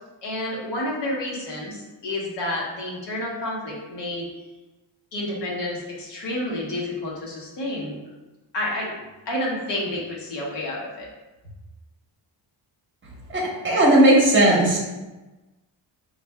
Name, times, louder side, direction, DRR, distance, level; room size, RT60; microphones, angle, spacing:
voice 1, 0.2-4.3 5.1-7.9 8.5-8.9 9.3-11.1, left 1 dB, 65° left, -3 dB, 1.1 m, -29 dB
voice 2, 13.3-14.8, right 1 dB, 25° right, -3 dB, 0.9 m, -17 dB
5.9 x 2.5 x 2.2 m, 1.1 s
wide cardioid pair, 160°, 45 cm